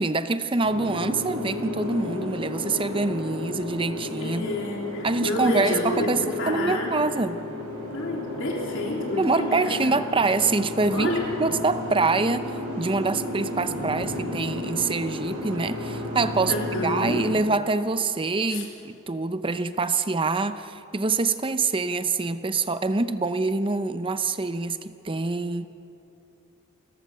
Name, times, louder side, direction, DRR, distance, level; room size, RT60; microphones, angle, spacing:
voice 1, 0.0-4.4 5.0-7.4 9.2-12.5 12.8-25.7, right 3 dB, 25° right, 11 dB, 0.7 m, -25 dB
Boat Water vehicle, 0.6-17.4, left 2 dB, 80° right, 5.5 m, -33 dB
voice 2, 4.2-6.1 6.4-6.9 7.9-9.9 10.9-11.3 16.5-17.2 18.5-18.6, left 2 dB, 60° left, -1 dB, 3.5 m, -29 dB
29.0 x 14.0 x 6.7 m, 2.8 s
head